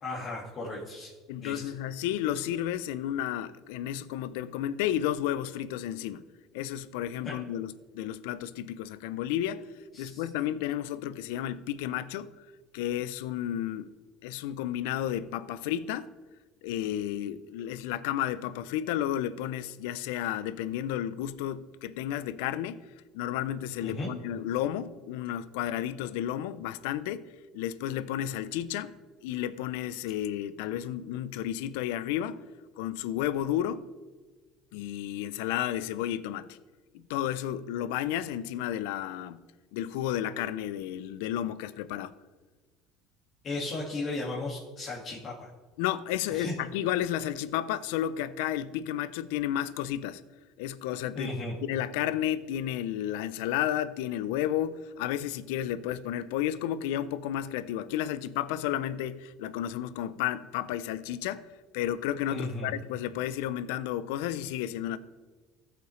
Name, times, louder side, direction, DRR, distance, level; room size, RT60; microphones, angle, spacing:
voice 1, 0.0-1.1 1.4-1.6 7.2-7.4 9.9-10.2 23.8-24.1 43.4-45.5 46.3-46.5 51.2-51.5 62.3-62.7, left 2 dB, 40° left, 1.9 m, -35 dB
voice 2, 1.3-6.2 6.5-9.6 10.0-12.5 12.7-13.9 14.2-16.1 16.6-22.9 23.1-27.3 27.5-28.9 29.2-32.4 32.8-33.9 34.7-36.6 36.9-39.4 39.7-42.1 45.8-50.2 50.6-51.3 51.7-61.5 61.7-65.0, left 11 dB, 80° left, 0.4 m, -32 dB
14.0 x 5.7 x 3.2 m
supercardioid pair, 115°, 0 cm